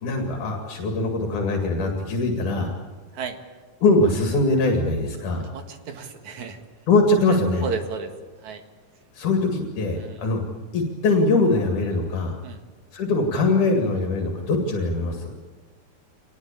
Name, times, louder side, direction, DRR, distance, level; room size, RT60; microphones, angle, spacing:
voice 1, 0.0-2.7 3.8-5.5 6.9-7.7 9.1-10.4 10.7-12.4 12.9-15.3, left 2 dB, 80° left, 2 dB, 3.7 m, -22 dB
voice 2, 5.5-6.6 7.6-8.1 8.4-8.6 10.0-10.2 12.4-12.6, right 5 dB, 70° right, 6 dB, 3.1 m, -33 dB
25.5 x 19.5 x 8.6 m, 1.4 s
omnidirectional pair, 3.5 m